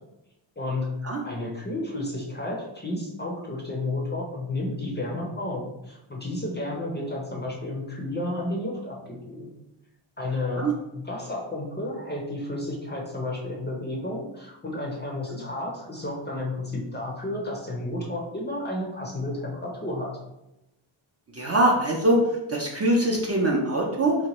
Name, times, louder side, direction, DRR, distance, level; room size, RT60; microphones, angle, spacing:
voice 1, 1.2-9.5 10.2-10.7 10.9-20.1, left 1 dB, 20° left, -2 dB, 0.5 m, -32 dB
voice 2, 21.3-22.2 22.5-24.2, right 1 dB, 30° right, -2 dB, 0.4 m, -23 dB
2.8 x 2.2 x 2.9 m, 0.91 s
wide cardioid pair, 95°, 50 cm